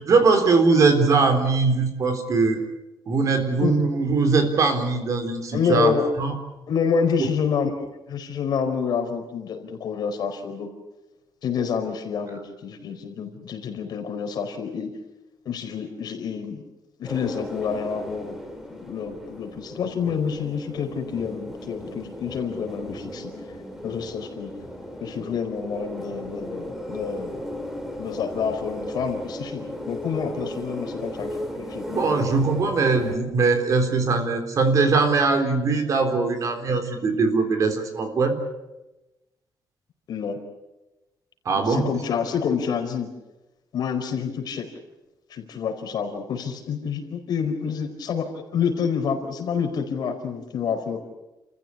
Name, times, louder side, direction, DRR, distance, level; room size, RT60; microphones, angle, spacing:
voice 1, 0.1-2.6 3.1-5.9 6.2-6.3 7.2-7.3 31.9-38.4 41.5-41.9, right 4 dB, 45° right, 7 dB, 3.8 m, -21 dB
voice 2, 5.5-6.1 6.7-7.7 8.1-10.7 11.4-14.9 15.4-16.6 17.0-18.4 18.7-23.3 23.8-24.5 25.0-27.4 28.0-32.5 40.1-40.4 41.5-43.1 43.7-44.6 45.3-51.0, left 6 dB, 60° left, 5 dB, 4.7 m, -28 dB
sound 1, 17.0-33.2, equal, 5° right, 2.9 m, -36 dB
30.0 x 15.0 x 10.0 m, 1.0 s
wide cardioid pair, 170°, 8 cm